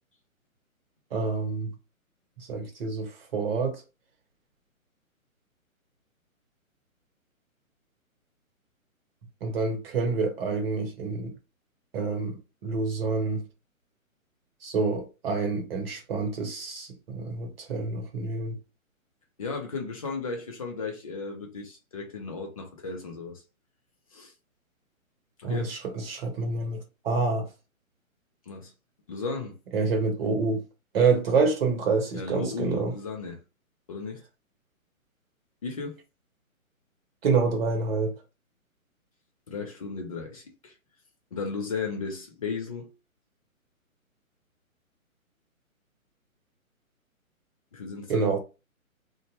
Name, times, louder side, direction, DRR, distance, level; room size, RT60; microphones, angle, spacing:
voice 1, 1.1-1.7 2.4-3.8 9.4-11.3 11.9-12.4 12.6-13.4 14.6-18.6 25.4-27.5 29.7-30.6 30.9-32.9 37.2-38.1 48.1-48.4, right 4 dB, 45° right, 1.0 m, -27 dB
voice 2, 19.4-23.4 24.1-24.3 25.4-25.7 28.5-28.7 29.1-29.6 32.1-33.4 33.9-34.2 35.6-36.0 39.5-40.7 41.3-42.9 47.7-48.3, left 4 dB, 25° left, 0.4 m, -35 dB
2.5 x 2.2 x 2.8 m
figure-of-eight pair, 135°, 42 cm